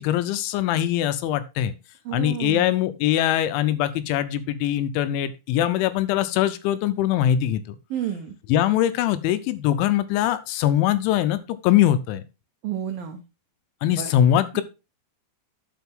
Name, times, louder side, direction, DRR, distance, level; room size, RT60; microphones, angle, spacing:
voice 1, 0.0-1.7 2.1-7.8 8.5-11.4 11.6-12.2 13.8-14.6, left 11 dB, 80° left, 12 dB, 3.0 m, -22 dB
voice 2, 2.1-2.8 7.9-8.3 12.6-13.2 14.0-14.1 14.5-14.6, right 10 dB, 85° right, 5 dB, 2.0 m, -30 dB
12.0 x 5.1 x 3.6 m, 0.27 s
omnidirectional pair, 5.5 m